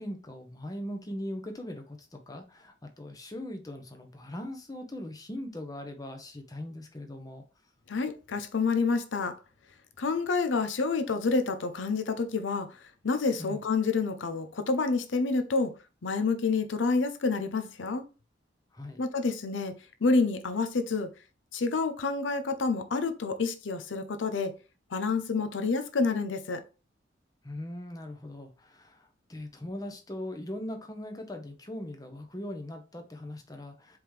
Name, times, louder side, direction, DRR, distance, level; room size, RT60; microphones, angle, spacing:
voice 1, 0.0-7.4 13.4-13.6 18.7-19.0 27.4-34.0, left 1 dB, 20° left, 0.8 m, -40 dB
voice 2, 7.9-9.4 10.0-12.7 13.0-15.7 16.0-18.0 19.0-19.7 20.0-21.1 21.5-24.5 24.9-26.6, left 4 dB, 90° left, 0.6 m, -28 dB
4.7 x 3.6 x 3.2 m
head